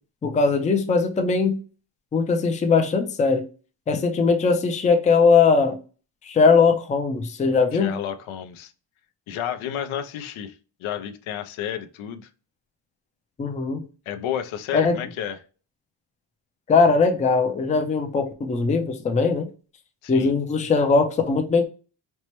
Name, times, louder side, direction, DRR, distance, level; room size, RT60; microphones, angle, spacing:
voice 1, 0.2-1.6 2.1-3.4 3.9-5.8 6.2-8.0 13.4-13.8 14.7-15.0 16.7-19.5 20.1-21.7, left 4 dB, 15° left, 0.3 m, -20 dB
voice 2, 7.7-8.7 9.3-12.3 14.1-15.4 20.0-20.3, left 9 dB, 90° left, 0.6 m, -31 dB
4.4 x 2.1 x 2.9 m
cardioid pair, 145°, 47 cm